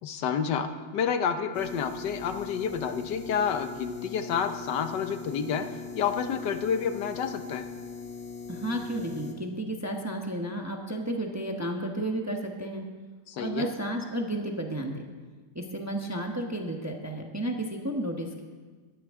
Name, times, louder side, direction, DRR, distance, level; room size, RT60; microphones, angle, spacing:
voice 1, 0.0-5.7 5.9-7.6 13.3-13.7, left 7 dB, 85° left, 8 dB, 1.5 m, -29 dB
sound 1, 1.5-9.3, left 5 dB, 5° left, 1.4 m, -41 dB
voice 2, 8.5-12.8 13.4-15.0 15.5-18.4, right 1 dB, 10° right, 2 dB, 0.8 m, -32 dB
18.5 x 12.0 x 3.7 m, 1.4 s
omnidirectional pair, 1.8 m